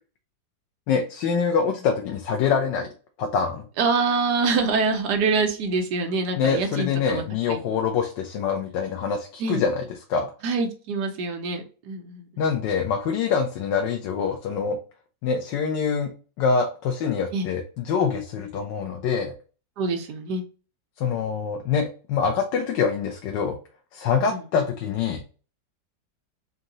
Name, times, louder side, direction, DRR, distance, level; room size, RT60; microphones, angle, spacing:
voice 1, 0.9-2.9 3.2-3.6 6.4-10.3 12.4-14.8 15.2-16.1 16.4-19.3 21.0-23.6 23.9-25.2, left 6 dB, 85° left, 4 dB, 1.4 m, -25 dB
voice 2, 3.8-7.6 9.4-9.6 10.4-12.4 17.3-17.5 19.8-20.4 24.3-24.4, right 4 dB, 70° right, 5 dB, 1.4 m, -25 dB
4.2 x 2.8 x 3.8 m, 0.37 s
omnidirectional pair, 1.9 m